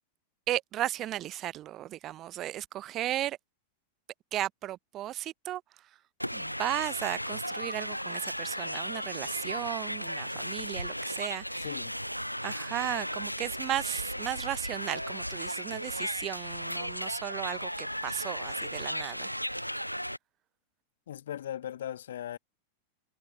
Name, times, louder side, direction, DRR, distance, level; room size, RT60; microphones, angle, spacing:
voice 1, 0.5-3.4 4.3-5.9 6.3-11.7 12.4-19.3, right 13 dB, 35° right, 0.6 m, -35 dB
sound 1, 6.2-20.2, equal, 90° left, 0.4 m, -35 dB
voice 2, 11.6-11.9 21.1-22.4, left 11 dB, 60° left, 1.7 m, -38 dB
figure-of-eight pair, 90°, 0 cm